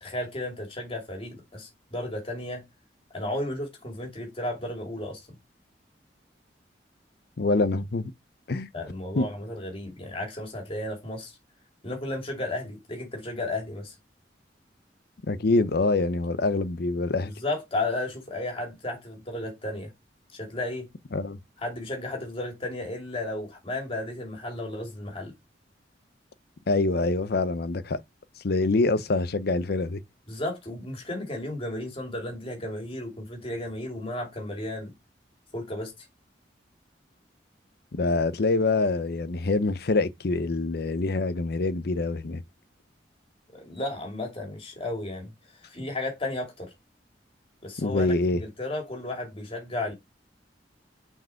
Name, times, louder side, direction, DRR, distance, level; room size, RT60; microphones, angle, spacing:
voice 1, 0.0-2.6 3.1-5.2 8.7-11.3 11.8-13.9 17.2-19.9 20.3-20.9 21.6-25.3 30.3-34.9 35.5-35.9 43.5-45.3 45.7-46.7 47.6-49.9, left 1 dB, 30° left, 2.6 m, -33 dB
voice 2, 7.4-8.1 8.5-8.7 9.1-9.3 15.3-17.3 21.1-21.4 26.7-28.0 28.4-30.0 37.9-42.4 47.8-48.4, left 3 dB, 60° left, 0.6 m, -25 dB
6.2 x 4.7 x 4.4 m
head